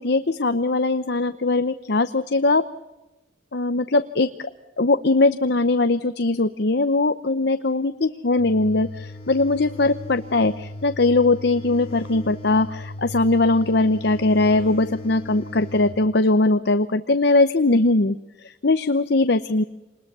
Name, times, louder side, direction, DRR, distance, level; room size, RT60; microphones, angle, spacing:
voice 1, 0.0-2.6 3.5-4.3 4.8-19.6, left 2 dB, 55° left, 10 dB, 0.8 m, -20 dB
sound 1, 8.4-16.0, left 1 dB, 30° left, 3.2 m, -37 dB
26.5 x 21.0 x 6.8 m, 1.0 s
head